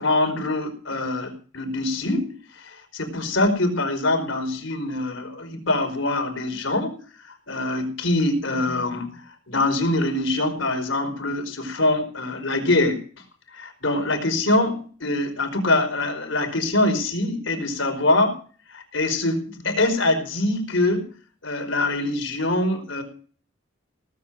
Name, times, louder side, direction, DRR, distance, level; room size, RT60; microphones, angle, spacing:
voice 1, 0.0-6.9 7.2-13.0 13.5-18.4 18.7-21.1 21.4-23.0, left 2 dB, 80° left, 4 dB, 4.6 m, -24 dB
18.0 x 7.5 x 7.5 m, 0.41 s
head